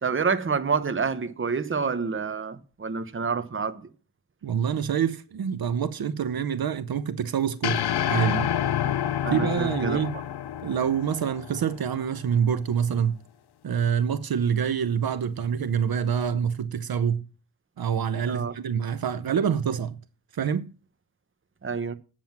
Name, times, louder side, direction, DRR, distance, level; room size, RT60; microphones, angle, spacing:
voice 1, 0.0-3.8 8.8-8.9 9.2-10.1 18.3-18.5 21.6-21.9, right 5 dB, 30° right, 0.9 m, -28 dB
voice 2, 4.4-8.5 9.3-10.2 10.6-13.2 13.6-17.2 17.8-20.0 20.3-20.7, right 8 dB, 70° right, 0.7 m, -26 dB
sound 1, 7.6-12.0, left 10 dB, 90° left, 0.7 m, -28 dB
8.9 x 7.5 x 5.9 m
wide cardioid pair, 85°, 38 cm